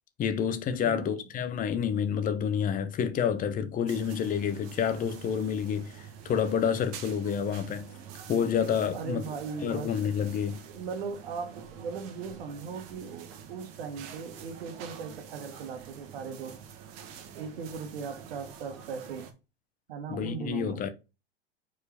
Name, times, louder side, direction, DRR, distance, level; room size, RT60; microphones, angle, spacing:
voice 1, 0.2-7.9 8.3-9.2 9.6-10.6 20.1-20.9, left 7 dB, 25° left, 0.9 m, -29 dB
voice 2, 0.8-1.2 8.9-10.0 10.7-16.6 17.3-19.3 19.9-20.8, right 5 dB, 65° right, 1.6 m, -38 dB
sound 1, 3.9-19.3, right 8 dB, 45° right, 1.5 m, -47 dB
5.0 x 4.8 x 5.0 m
hypercardioid pair, 95°, 32 cm